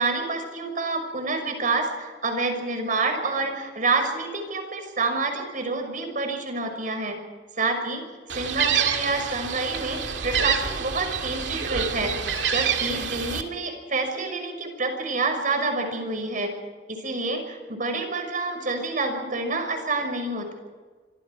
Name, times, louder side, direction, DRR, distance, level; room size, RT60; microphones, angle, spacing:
voice 1, 0.0-7.2 7.6-8.0 8.3-12.1 12.5-16.5 16.9-20.5, right 3 dB, 50° right, 5 dB, 5.8 m, -28 dB
Gull seagull, 8.3-13.4, right 7 dB, 85° right, 2.2 m, -27 dB
26.0 x 25.5 x 4.8 m, 1.5 s
head